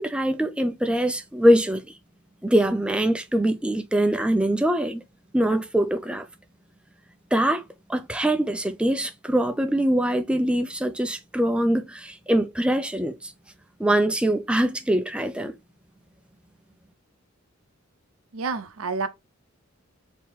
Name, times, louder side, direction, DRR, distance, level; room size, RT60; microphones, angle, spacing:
voice 1, 0.0-1.8 2.4-5.0 5.3-6.3 7.3-7.6 7.9-13.3 13.8-15.5, right 1 dB, 5° right, 0.4 m, -23 dB
voice 2, 18.3-19.1, right 4 dB, 75° right, 0.7 m, -29 dB
3.7 x 2.9 x 4.6 m
head